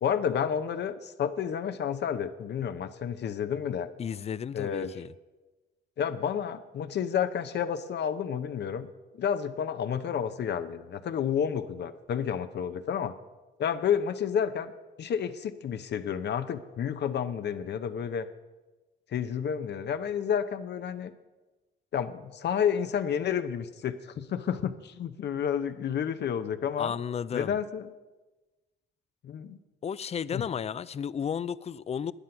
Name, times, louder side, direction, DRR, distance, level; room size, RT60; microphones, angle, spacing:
voice 1, 0.0-3.9 4.5-4.9 6.0-8.9 9.1-13.1 13.6-14.7 15.0-18.3 19.1-21.1 21.9-26.9 27.3-27.9 29.2-29.6 30.3-30.4, left 8 dB, 60° left, 0.7 m, -30 dB
voice 2, 4.0-5.1 26.8-27.6 29.8-32.1, left 7 dB, 30° left, 0.4 m, -33 dB
11.5 x 9.5 x 5.8 m
cardioid pair, 90°, 20 cm